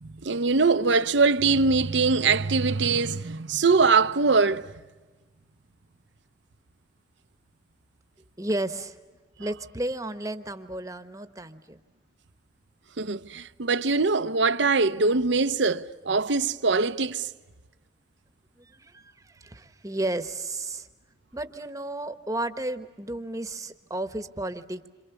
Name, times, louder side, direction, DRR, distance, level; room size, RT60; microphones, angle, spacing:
voice 1, 0.0-4.6 13.0-17.3, right 4 dB, 75° right, 0.8 m, -22 dB
voice 2, 8.4-9.0 9.4-11.8 18.6-20.9 21.3-24.9, right 1 dB, 15° right, 1.1 m, -33 dB
27.5 x 27.0 x 7.0 m
head